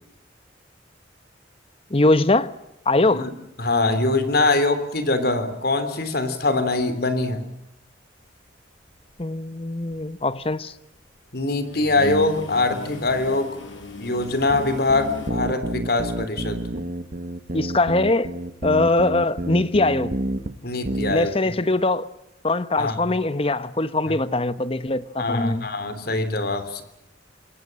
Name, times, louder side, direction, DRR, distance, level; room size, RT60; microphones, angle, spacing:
voice 1, 1.9-2.5 2.9-3.3 9.2-10.7 17.5-18.3 18.6-20.1 21.1-22.1 22.4-25.7, left 2 dB, 30° left, 1.0 m, -22 dB
voice 2, 3.6-7.4 11.3-13.6 14.0-16.6 20.6-21.3 22.8-23.0 25.2-26.8, left 2 dB, 55° left, 3.3 m, -23 dB
sound 1, 8.9-9.2 9.7-11.0 11.4-15.3, left 2 dB, 85° left, 6.4 m, -37 dB
sound 2, 14.5-20.5 20.9-21.1, right 1 dB, 45° right, 1.5 m, -29 dB
26.5 x 21.5 x 7.7 m
head